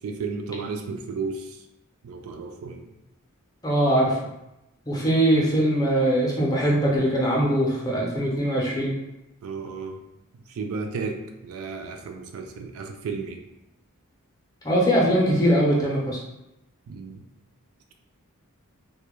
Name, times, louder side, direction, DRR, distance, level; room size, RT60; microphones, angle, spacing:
voice 1, 0.0-1.7 2.0-2.9 9.4-10.0 10.3-13.4 16.9-17.3, right 4 dB, 70° right, 4 dB, 0.3 m, -33 dB
voice 2, 3.6-4.2 4.9-9.0 14.6-16.2, right 1 dB, 15° left, -3 dB, 0.5 m, -21 dB
2.2 x 2.0 x 2.9 m, 0.89 s
head